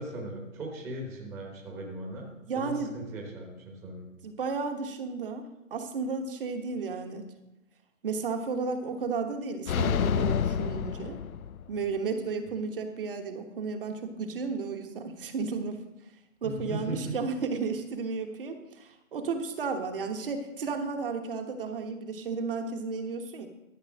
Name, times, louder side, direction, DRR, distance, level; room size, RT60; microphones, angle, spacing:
voice 1, 0.0-2.3 2.5-4.1 16.4-17.2, right 1 dB, 5° right, 0 dB, 1.0 m, -38 dB
voice 2, 2.5-2.9 4.2-7.3 8.0-11.2 11.7-15.8 16.4-23.5, right 4 dB, 40° right, 5 dB, 1.3 m, -33 dB
sound 1, 9.7-11.8, left 8 dB, 90° left, 0.6 m, -28 dB
13.0 x 5.6 x 7.3 m, 0.93 s
hypercardioid pair, 155°, 41 cm